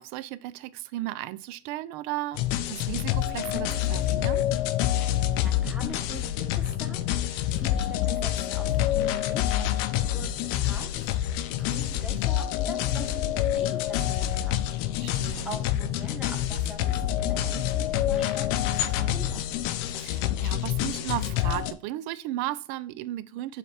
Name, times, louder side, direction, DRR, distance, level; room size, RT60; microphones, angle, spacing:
voice 1, 0.0-2.4 2.7-4.4 15.0-15.5 20.0-23.6, right 15 dB, 60° right, 0.5 m, -35 dB
sound 1, 2.3-21.7, left 12 dB, 60° left, 0.6 m, -27 dB
voice 2, 5.1-10.9 11.2-14.7 15.1-19.5, equal, ahead, 1.0 m, -44 dB
7.4 x 3.4 x 4.2 m
cardioid pair, 155°, 39 cm